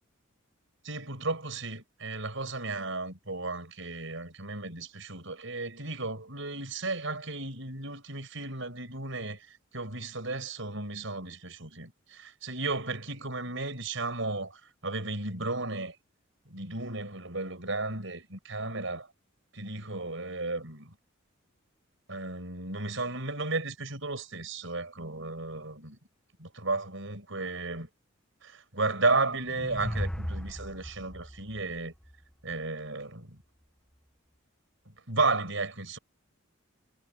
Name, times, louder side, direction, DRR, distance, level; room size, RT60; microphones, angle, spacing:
voice 1, 0.8-9.5 9.7-15.9 16.5-19.1 19.5-20.9 22.1-26.0 26.4-27.9 28.4-31.9 32.4-33.4 35.1-36.0, right 3 dB, 65° right, 7.4 m, -34 dB
sound 1, 29.2-32.5, equal, 5° left, 1.8 m, -37 dB
head